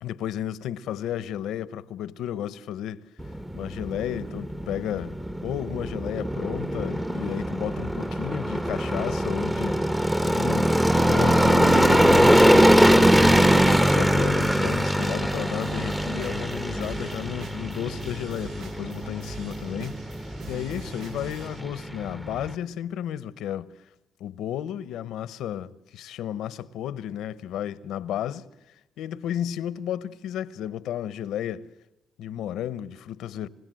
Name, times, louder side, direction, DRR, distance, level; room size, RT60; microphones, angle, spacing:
voice 1, 0.0-3.0 3.5-9.8 10.2-13.4 13.9-20.0 20.5-23.7 24.2-28.4 29.0-31.7 32.2-33.5, left 10 dB, 85° left, 1.0 m, -33 dB
sound 1, 3.2-22.5, equal, 5° right, 1.1 m, -22 dB
sound 2, 12.0-21.6, right 3 dB, 85° right, 2.0 m, -44 dB
29.0 x 16.0 x 7.8 m
cardioid pair, 90°, 0 cm